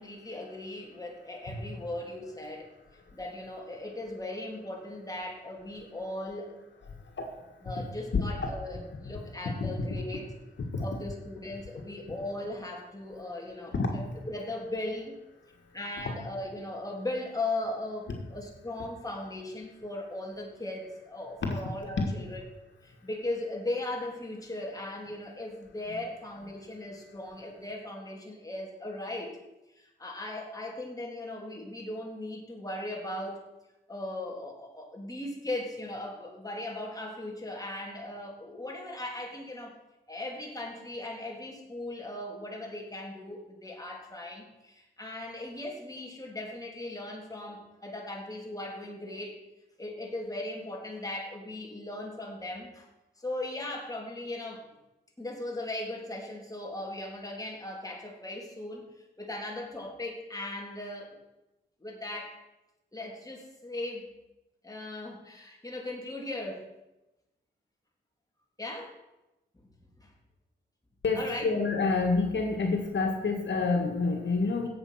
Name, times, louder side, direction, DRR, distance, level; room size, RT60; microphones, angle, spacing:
voice 1, 0.0-2.7 3.1-6.6 7.6-10.3 10.8-15.2 15.7-22.4 22.8-29.4 29.8-33.4 33.9-39.7 40.1-49.4 49.8-52.9 53.2-54.6 55.2-58.9 59.2-61.2 61.8-62.4 62.9-64.1 64.6-66.7 68.6-69.0 69.6-69.7 70.0-70.1 71.2-71.5, left 1 dB, 20° left, -1 dB, 3.5 m, -38 dB
voice 2, 8.1-8.5 10.7-10.9 13.7-13.9 21.4-21.5 22.0-22.1 71.0-74.7, left 4 dB, 75° left, 2 dB, 2.0 m, -28 dB
16.5 x 7.6 x 5.9 m, 0.98 s
wide cardioid pair, 85°, 19 cm